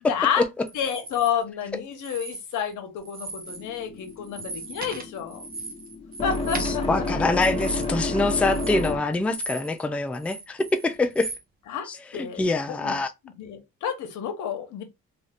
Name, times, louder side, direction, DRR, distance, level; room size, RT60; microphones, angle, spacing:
voice 1, 0.1-0.4 0.7-5.4 6.2-7.0 11.7-11.9 12.1-13.0 13.4-14.8, left 8 dB, 80° left, 0.9 m, -30 dB
sound 1, 0.7-1.3 1.9-2.7 3.0-3.7 4.0-9.8 10.1-11.4, right 3 dB, 30° right, 0.7 m, -38 dB
sound 2, 3.5-9.3, left 2 dB, 20° left, 1.1 m, -31 dB
voice 2, 6.6-11.3 11.9-13.1, left 3 dB, 5° left, 0.3 m, -25 dB
2.7 x 2.4 x 3.3 m
cardioid pair, 90°, 30 cm